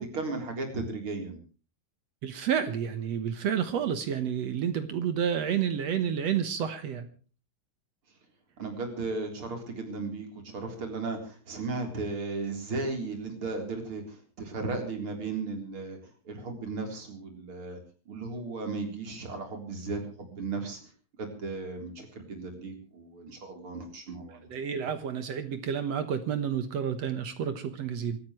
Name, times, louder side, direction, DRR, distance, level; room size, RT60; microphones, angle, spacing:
voice 1, 0.0-1.4 8.6-16.0 16.3-17.8 18.1-20.8 21.2-24.5, right 3 dB, 40° right, 4 dB, 4.4 m, -35 dB
voice 2, 2.2-7.1 24.5-28.2, right 8 dB, 60° right, 10 dB, 2.0 m, -30 dB
26.5 x 14.0 x 3.2 m, 0.37 s
omnidirectional pair, 3.9 m